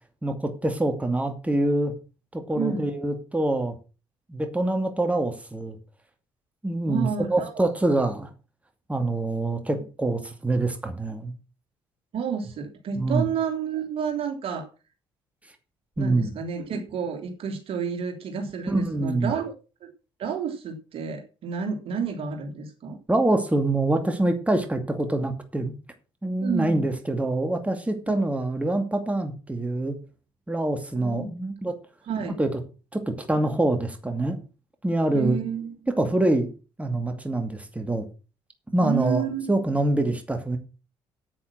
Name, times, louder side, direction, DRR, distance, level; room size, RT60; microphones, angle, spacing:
voice 1, 0.2-1.9 2.3-3.8 4.3-5.8 6.6-8.3 8.9-11.3 13.0-13.3 16.0-16.3 18.7-19.3 23.1-25.7 26.2-30.0 30.5-31.7 32.4-32.5 32.9-34.4 34.8-35.4 35.9-36.5 36.8-38.1 38.7-40.6, right 2 dB, 10° right, 6 dB, 2.4 m, -25 dB
voice 2, 6.9-7.5 12.1-14.7 16.0-19.5 19.8-19.9 20.2-23.0 26.4-26.8 28.1-28.2 30.9-31.3 32.1-32.4 35.1-36.1 38.8-39.6, right 6 dB, 50° right, 5 dB, 3.0 m, -30 dB
9.5 x 8.9 x 6.1 m, 0.33 s
figure-of-eight pair, 45°, 12 cm